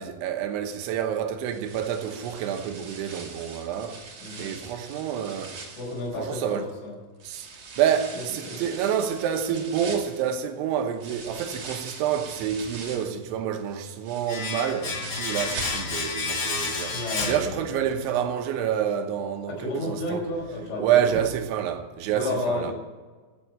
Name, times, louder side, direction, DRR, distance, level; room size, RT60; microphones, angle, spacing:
voice 1, 0.0-4.0 4.4-5.6 6.2-6.7 7.2-20.2 20.8-22.7, right 9 dB, 80° right, 3.4 m, -28 dB
sound 1, 1.4-6.7 7.2-13.2 13.6-16.2 16.5-16.6 17.1-17.2, right 4 dB, 40° right, 2.9 m, -42 dB
voice 2, 4.2-4.5 5.8-6.9 8.4-8.6 16.9-17.6 19.5-21.2 22.1-22.7, left 1 dB, 75° left, 7.7 m, -31 dB
Domestic sounds home sounds, 14.3-18.1 18.3-18.5, left 4 dB, 45° left, 1.6 m, -31 dB
16.0 x 8.9 x 8.7 m
omnidirectional pair, 5.5 m